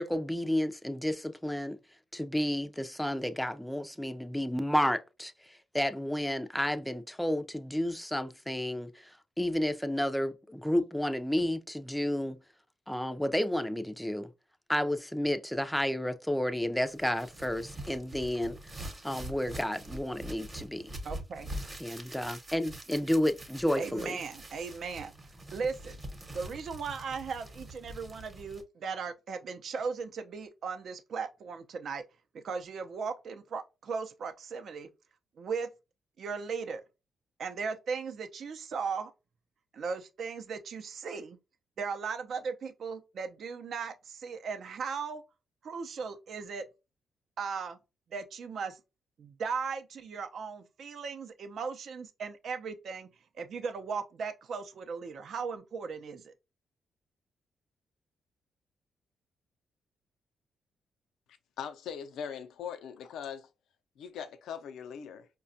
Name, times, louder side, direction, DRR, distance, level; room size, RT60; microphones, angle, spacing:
voice 1, 0.0-1.8 2.1-12.4 12.9-14.3 14.7-18.6 19.0-20.9 21.8-24.2, left 1 dB, 5° left, 0.4 m, -31 dB
sound 1, 16.9-28.6, right 1 dB, 30° right, 0.9 m, -44 dB
voice 2, 21.0-21.5 23.8-25.1 25.5-26.0 26.3-32.0 32.4-34.9 35.4-35.7 36.2-36.8 37.4-39.1 39.7-41.4 41.8-45.2 45.6-46.6 47.4-47.8 48.1-48.8 49.2-53.1 53.3-56.3, right 5 dB, 65° right, 0.5 m, -37 dB
voice 3, 61.6-63.5 64.0-65.3, left 8 dB, 85° left, 0.5 m, -40 dB
4.9 x 2.2 x 2.6 m
cardioid pair, 95°, 0 cm